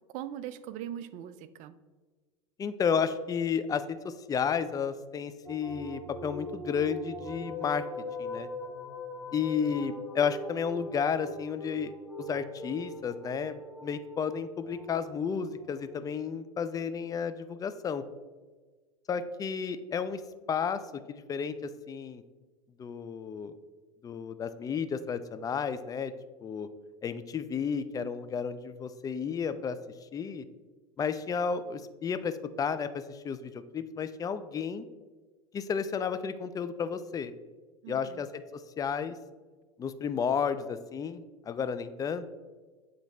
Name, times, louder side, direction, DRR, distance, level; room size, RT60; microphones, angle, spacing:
voice 1, 0.1-1.8 37.8-38.3, right 10 dB, 45° right, 13 dB, 0.4 m, -40 dB
voice 2, 2.6-7.8 8.2-8.5 9.3-18.0 19.1-20.2 20.5-20.8 21.1-22.2 22.8-23.5 24.0-26.1 26.4-26.7 27.0-29.8 30.1-30.4 31.0-34.9 35.5-37.3 37.9-39.2 39.8-42.2, left 6 dB, 20° left, 11 dB, 0.4 m, -32 dB
sound 1, 5.4-16.1, left 1 dB, ahead, 1.2 m, -41 dB
8.1 x 3.9 x 3.3 m, 1.3 s
hypercardioid pair, 85°, 18 cm